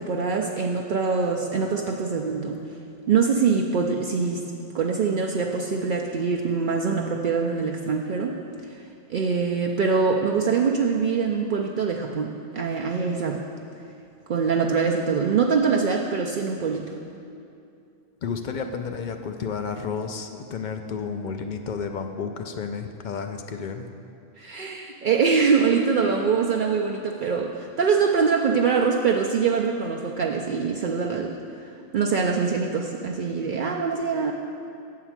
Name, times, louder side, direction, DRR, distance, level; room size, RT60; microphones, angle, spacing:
voice 1, 0.0-2.6 3.1-4.4 4.7-8.4 9.1-13.4 14.3-16.9 24.4-31.3 31.6-34.3, right 5 dB, 60° right, 0 dB, 0.6 m, -24 dB
voice 2, 18.2-23.9, left 5 dB, 55° left, 6 dB, 0.6 m, -31 dB
7.9 x 4.8 x 7.3 m, 2.6 s
omnidirectional pair, 1.1 m